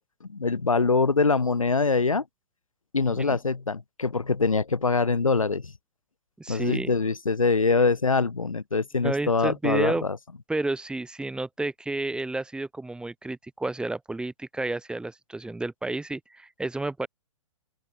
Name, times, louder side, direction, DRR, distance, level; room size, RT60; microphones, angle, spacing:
voice 1, 0.3-2.2 2.9-5.7 6.5-10.2, left 4 dB, 85° left, 2.3 m, -24 dB
voice 2, 6.4-7.0 9.0-10.1 10.5-17.1, right 2 dB, 5° right, 6.8 m, -31 dB
open air
figure-of-eight pair, 115°, 17 cm